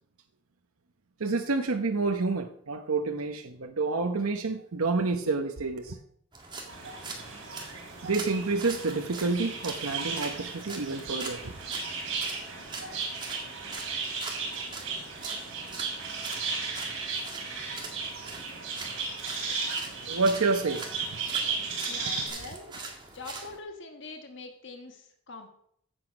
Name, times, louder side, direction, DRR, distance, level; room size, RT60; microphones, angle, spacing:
voice 1, 1.2-6.0 8.0-11.6 20.1-21.2, right 3 dB, 80° right, 0.9 m, -29 dB
sound 1, 6.3-23.6, right 3 dB, 20° right, 2.0 m, -43 dB
sound 2, 6.7-22.3, right 4 dB, 60° right, 4.5 m, -35 dB
voice 2, 21.9-25.5, left 3 dB, 55° left, 1.4 m, -44 dB
15.0 x 7.9 x 5.2 m
head